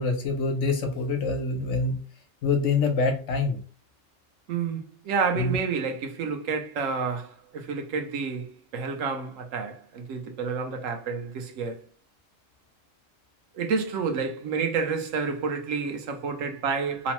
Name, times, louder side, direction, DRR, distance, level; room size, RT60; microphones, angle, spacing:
voice 1, 0.0-2.0 2.4-3.6 5.4-5.6, left 3 dB, 70° left, 1.0 m, -25 dB
voice 2, 4.5-11.8 13.5-17.1, right 5 dB, 90° right, 1.0 m, -29 dB
3.0 x 2.0 x 2.9 m
omnidirectional pair, 1.3 m